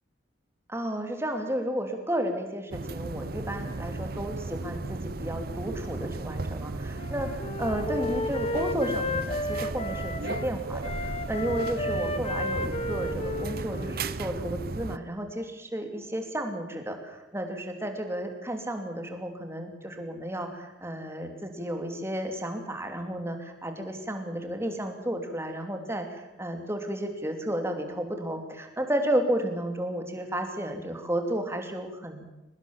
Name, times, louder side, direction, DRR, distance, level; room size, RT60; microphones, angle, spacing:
voice 1, 0.7-32.3, right 1 dB, 15° right, 5 dB, 2.9 m, -32 dB
sound 1, 2.7-15.0, right 3 dB, 50° right, 0.7 m, -35 dB
Wind instrument woodwind instrument, 6.9-10.5 10.8-14.6, left 1 dB, 30° left, 1.4 m, -33 dB
23.5 x 20.0 x 7.4 m, 0.99 s
head